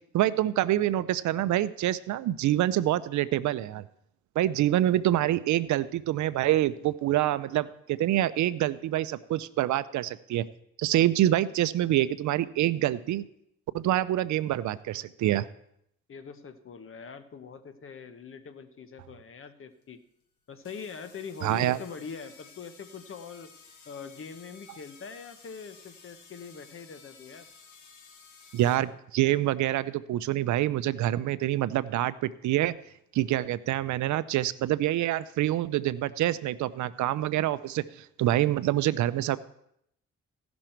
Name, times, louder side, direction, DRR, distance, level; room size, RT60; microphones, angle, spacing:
voice 1, 0.1-3.8 4.4-10.4 10.8-13.2 13.7-15.5 21.4-21.8 28.5-32.7 33.1-39.4, right 13 dB, 75° right, 15 dB, 0.5 m, -26 dB
voice 2, 16.1-20.0 20.5-23.5 23.8-27.5, left 6 dB, 45° left, 10 dB, 1.1 m, -43 dB
sound 1, 19.8-19.9 20.6-28.8, left 5 dB, 75° left, 1.7 m, -54 dB
16.5 x 6.2 x 4.4 m, 0.74 s
cardioid pair, 90°, 30 cm